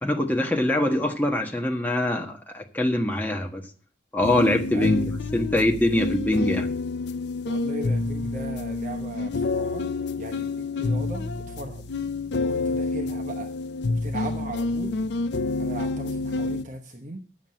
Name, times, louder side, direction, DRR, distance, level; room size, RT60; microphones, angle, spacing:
voice 1, 0.0-3.6 4.1-5.0 5.3-6.7, left 1 dB, 10° left, 1 dB, 1.3 m, -23 dB
sound 1, 4.2-16.6, left 3 dB, 70° left, 0.5 m, -28 dB
voice 2, 4.7-5.1 7.4-9.8 10.2-11.8 12.4-13.5 14.0-15.0 15.6-17.2, right 1 dB, 45° right, 3 dB, 1.0 m, -37 dB
9.5 x 7.4 x 7.5 m, 0.40 s
head